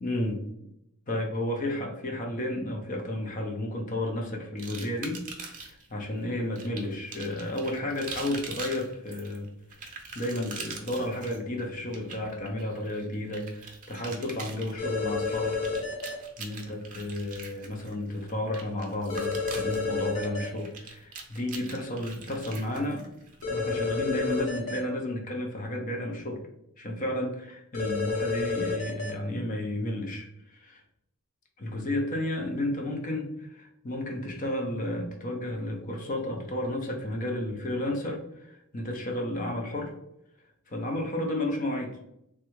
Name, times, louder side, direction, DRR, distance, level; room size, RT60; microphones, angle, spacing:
voice 1, 0.0-0.4 1.1-9.5 9.8-15.7 16.4-23.0 23.5-26.4 26.8-30.8 31.6-39.9 40.7-42.0, left 1 dB, 35° left, 1 dB, 0.5 m, -32 dB
sound 1, 4.6-5.9 6.6-23.4, right 4 dB, 35° right, 0.5 m, -43 dB
sound 2, 14.8-16.1 19.1-20.5 23.4-24.8 27.7-29.1, left 4 dB, 70° left, 0.9 m, -30 dB
3.3 x 2.2 x 3.0 m, 0.80 s
head